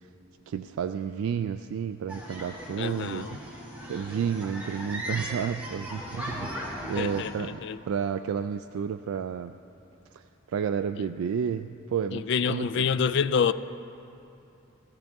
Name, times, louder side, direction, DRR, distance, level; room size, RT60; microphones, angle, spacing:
voice 1, 0.5-6.5 6.8-7.6 7.9-9.6 10.1-12.8, right 7 dB, 80° right, 9 dB, 0.3 m, -31 dB
sound 1, 2.1-7.3, equal, 5° right, 2.0 m, -38 dB
voice 2, 2.8-3.4 7.0-7.8 11.0-11.1 12.1-13.5, left 6 dB, 55° left, 14 dB, 0.3 m, -27 dB
17.5 x 13.5 x 3.5 m, 2.7 s
head